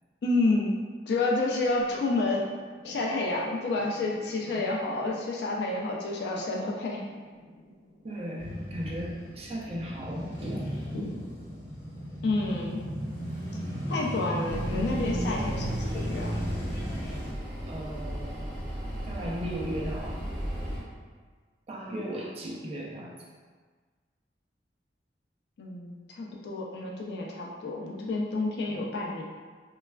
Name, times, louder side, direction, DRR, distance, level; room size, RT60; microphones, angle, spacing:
voice 1, 0.2-0.7 1.1-2.4 2.8-7.0 12.2-12.9 13.9-16.3 25.6-29.2, left 2 dB, 65° left, -3 dB, 0.4 m, -29 dB
sound 1, 1.7-14.7, equal, 85° left, 0.8 m, -48 dB
voice 2, 8.0-10.8 17.7-18.5 19.1-20.2 21.7-23.1 28.7-28.8, equal, 35° right, -3 dB, 0.4 m, -36 dB
Male speech man speaking / Motorcycle / Idling, 8.4-17.3, equal, 35° left, 1.3 m, -35 dB
sound 2, 14.5-20.8, equal, 10° right, 1.2 m, -36 dB
3.1 x 2.3 x 2.2 m, 1.5 s
head